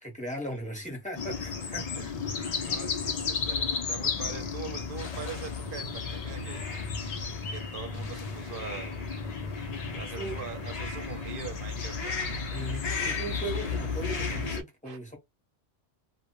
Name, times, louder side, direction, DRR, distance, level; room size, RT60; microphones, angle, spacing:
voice 1, 0.0-2.1 9.9-10.4 12.5-15.2, right 1 dB, 10° left, 0.6 m, -38 dB
sound 1, 1.2-14.6, left 5 dB, 60° left, 0.4 m, -33 dB
voice 2, 2.3-6.6 7.5-9.0 10.0-12.1 14.8-15.0, right 6 dB, 55° right, 0.7 m, -42 dB
2.1 x 2.1 x 2.9 m
omnidirectional pair, 1.2 m